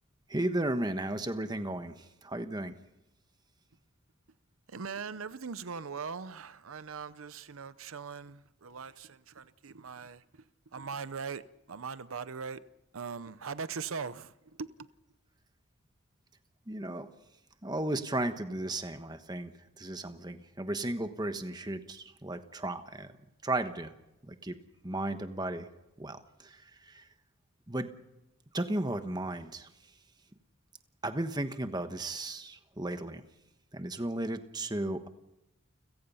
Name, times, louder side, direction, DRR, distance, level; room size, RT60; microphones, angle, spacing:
voice 1, 0.3-2.7 16.7-17.1 17.6-23.1 23.4-23.9 24.2-24.6 24.8-25.7 26.0-27.0 27.7-27.9 28.5-29.7 31.0-33.2 33.7-35.1, right 1 dB, 20° right, 1.2 m, -35 dB
voice 2, 4.7-10.4 10.7-12.6 12.9-14.3 14.6-14.7, right 5 dB, 80° right, 0.7 m, -40 dB
30.0 x 16.5 x 5.7 m
head